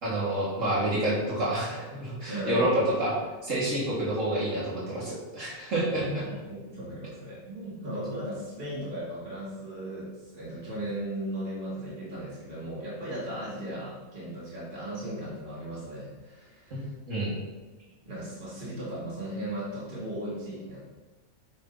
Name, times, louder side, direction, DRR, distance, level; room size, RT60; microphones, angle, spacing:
voice 1, 0.0-3.1 3.4-6.3 17.1-17.3, right 1 dB, 65° right, -7 dB, 2.5 m, -28 dB
voice 2, 2.3-2.7 6.2-16.9 18.1-20.8, right 1 dB, 35° right, -9 dB, 2.5 m, -37 dB
9.0 x 5.3 x 4.1 m, 1.2 s
omnidirectional pair, 1.5 m